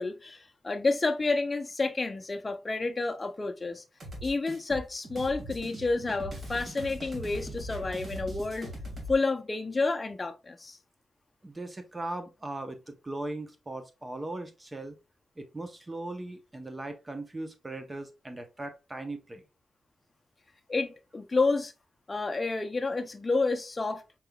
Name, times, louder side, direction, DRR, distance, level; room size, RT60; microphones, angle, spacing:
voice 1, 0.0-3.8 4.2-8.7 9.1-10.8 20.7-21.7 22.1-24.0, left 3 dB, 30° left, 0.6 m, -30 dB
sound 1, 4.0-9.2, equal, 50° right, 2.0 m, -40 dB
voice 2, 11.4-15.0 15.4-19.4, right 2 dB, 20° right, 0.9 m, -39 dB
4.5 x 3.6 x 2.3 m
cardioid pair, 85°, 0 cm